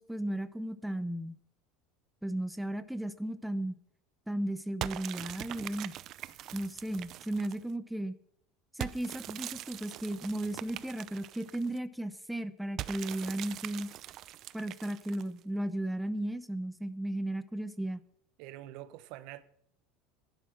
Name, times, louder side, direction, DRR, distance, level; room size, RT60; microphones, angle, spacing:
voice 1, 0.0-1.3 2.2-3.8 4.3-6.0 6.5-8.1 8.7-13.9 14.5-18.0, right 1 dB, 5° right, 0.8 m, -35 dB
sound 1, 4.8-7.7 8.8-11.8 12.8-15.4, right 13 dB, 50° right, 0.6 m, -42 dB
voice 2, 18.4-19.4, right 14 dB, 65° right, 0.9 m, -45 dB
11.0 x 11.0 x 5.9 m
supercardioid pair, 125°, 0 cm